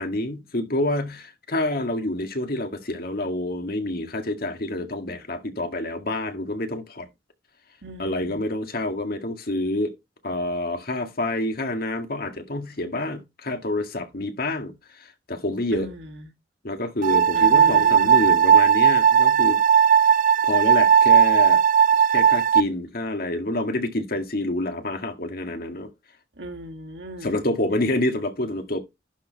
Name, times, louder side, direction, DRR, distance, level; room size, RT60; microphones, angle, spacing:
voice 1, 0.0-7.1 8.0-9.9 10.2-15.9 16.6-19.6 20.4-21.6 22.1-25.9 27.2-28.8, left 1 dB, 55° left, 1.8 m, -27 dB
voice 2, 7.8-8.4 15.7-16.3 17.3-18.4 26.4-27.4, right 1 dB, 75° right, 2.0 m, -37 dB
sound 1, 17.0-22.6, right 8 dB, 50° right, 0.4 m, -17 dB
11.5 x 4.4 x 4.1 m
head